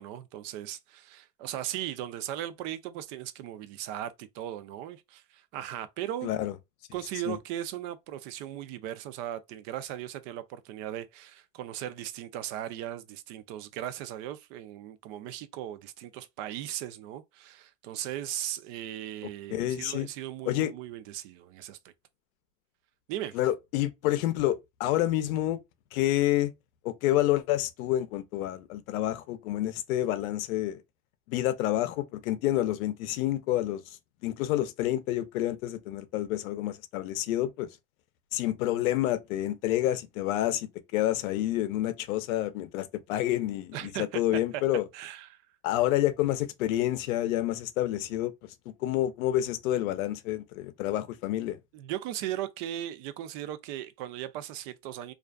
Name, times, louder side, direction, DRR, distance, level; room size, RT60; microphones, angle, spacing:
voice 1, 0.0-6.3 6.9-21.9 23.1-23.4 43.7-44.6 44.9-45.4 51.7-55.1, right 12 dB, 55° right, 0.5 m, -38 dB
voice 2, 6.2-6.5 7.3-7.4 19.5-20.1 20.5-20.7 23.3-25.6 25.9-26.5 26.8-30.8 31.3-33.8 34.2-37.7 38.3-44.8 45.6-48.5 48.8-51.6, left 14 dB, 85° left, 0.6 m, -28 dB
2.4 x 2.4 x 2.2 m
supercardioid pair, 130°, 41 cm